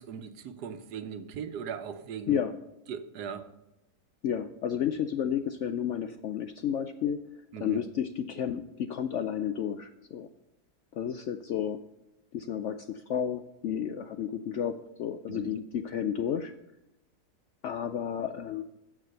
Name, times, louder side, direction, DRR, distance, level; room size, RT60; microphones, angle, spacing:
voice 1, 0.0-2.4 2.9-3.5 7.5-7.8 15.3-15.5, right 7 dB, 80° right, 10 dB, 1.3 m, -39 dB
voice 2, 4.2-7.2 7.6-10.3 10.9-11.8 12.3-16.5 17.6-18.6, left 9 dB, 70° left, 9 dB, 0.7 m, -32 dB
14.5 x 5.0 x 6.5 m, 0.89 s
omnidirectional pair, 1.7 m